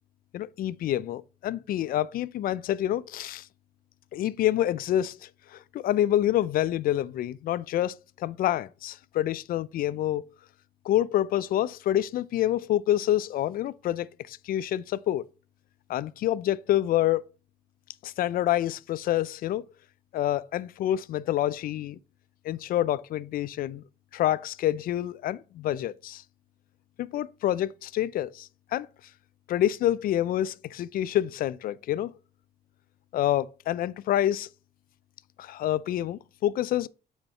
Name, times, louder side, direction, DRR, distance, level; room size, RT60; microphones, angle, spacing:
voice 1, 0.3-3.5 4.1-10.3 10.8-15.3 15.9-17.2 18.0-19.6 20.1-22.0 22.4-23.8 24.1-26.2 27.0-28.9 29.5-32.1 33.1-34.5 35.4-36.9, left 12 dB, 60° left, 0.5 m, -27 dB
7.7 x 4.5 x 4.4 m
cardioid pair, 110°, 17 cm